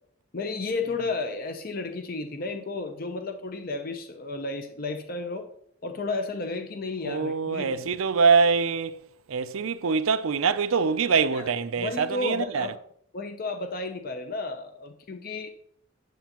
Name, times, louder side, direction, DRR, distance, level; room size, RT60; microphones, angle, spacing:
voice 1, 0.3-5.5 5.8-8.0 11.3-12.8 13.1-15.5, left 3 dB, 45° left, 0.6 m, -33 dB
voice 2, 7.0-9.0 9.3-12.7, right 5 dB, 80° right, 0.5 m, -24 dB
9.2 x 7.7 x 3.0 m
head